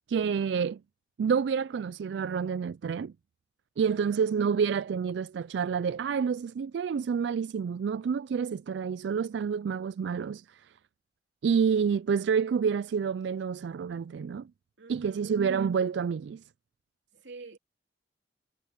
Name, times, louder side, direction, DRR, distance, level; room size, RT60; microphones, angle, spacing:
voice 1, 0.1-0.8 1.2-3.1 3.8-10.7 11.4-14.5 14.9-16.4, right 6 dB, 65° right, 0.3 m, -28 dB
voice 2, 14.8-15.3 17.1-17.6, right 3 dB, 90° right, 2.9 m, -48 dB
head